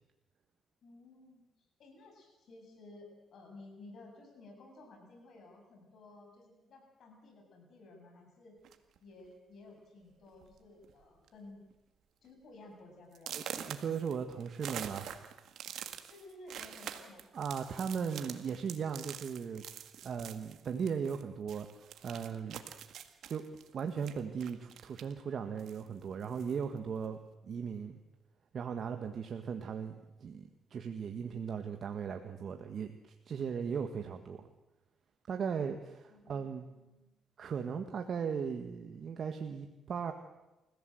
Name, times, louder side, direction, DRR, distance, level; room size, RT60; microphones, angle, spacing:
voice 1, 0.8-1.4 1.8-8.6 9.0-11.6 12.2-13.4 16.1-17.3 36.1-37.2, left 2 dB, 60° left, 2 dB, 7.9 m, -55 dB
sound 1, 8.6-9.0 9.8-9.9 10.3-10.5 10.8-11.3 11.7-11.8 12.3-12.4 13.1-21.2 21.5-25.2 25.6-26.6, right 9 dB, 75° right, 1.8 m, -46 dB
voice 2, 13.3-15.2 17.3-19.6 20.0-21.7 22.0-22.6 23.3-23.4 23.7-27.2 27.4-28.0 28.5-29.9 30.2-34.4 35.3-36.7 37.4-40.1, right 6 dB, 55° right, 5 dB, 1.6 m, -37 dB
28.5 x 15.5 x 7.9 m, 1.0 s
cardioid pair, 90°, 0 cm